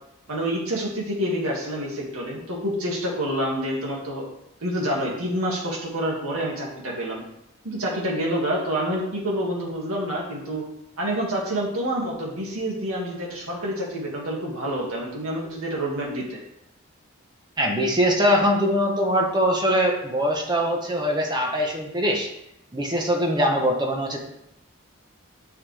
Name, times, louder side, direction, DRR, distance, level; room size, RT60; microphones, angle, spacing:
voice 1, 0.3-4.2 4.6-7.2 7.6-10.6 11.0-16.4, equal, 90° right, -3 dB, 2.3 m, -27 dB
voice 2, 17.6-22.3 22.7-24.2, equal, 20° right, 1 dB, 1.1 m, -22 dB
9.5 x 5.9 x 3.5 m, 0.83 s
head